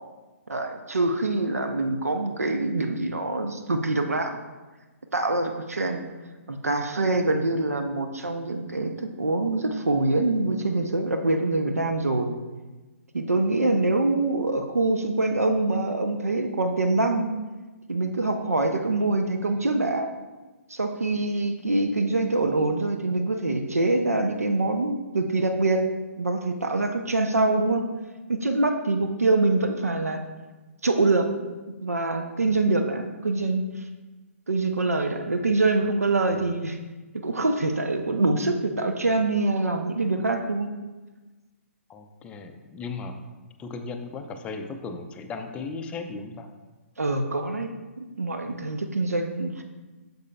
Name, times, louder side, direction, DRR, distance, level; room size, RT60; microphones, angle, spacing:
voice 1, 0.5-4.4 5.1-6.0 6.5-12.3 13.1-17.3 17.9-20.1 20.7-25.9 26.2-27.8 28.3-30.2 30.8-31.3 31.8-33.8 34.5-36.8 37.1-40.7 47.0-47.7 48.0-49.6, right 2 dB, 85° right, 5 dB, 0.6 m, -25 dB
voice 2, 41.9-43.2 43.6-46.5, left 4 dB, 15° left, 6 dB, 0.4 m, -36 dB
8.2 x 6.7 x 2.2 m, 1.2 s
figure-of-eight pair, 130°, 8 cm